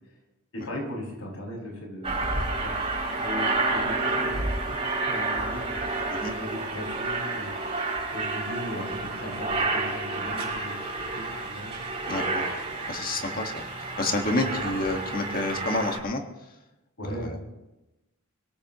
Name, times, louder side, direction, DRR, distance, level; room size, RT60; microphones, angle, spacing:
voice 1, 0.5-2.2 2.6-2.7 3.1-5.9 6.4-7.5 8.0-11.7 12.8-13.4 14.3-14.6 17.0-17.4, left 1 dB, 70° left, -1 dB, 6.6 m, -38 dB
Aircraft, 2.0-16.0, right 3 dB, 25° right, 5.2 m, -30 dB
voice 2, 12.1-12.4 12.9-13.6 14.0-16.2 17.1-17.5, left 2 dB, 40° left, 3 dB, 1.8 m, -29 dB
24.5 x 17.5 x 3.1 m, 1.0 s
head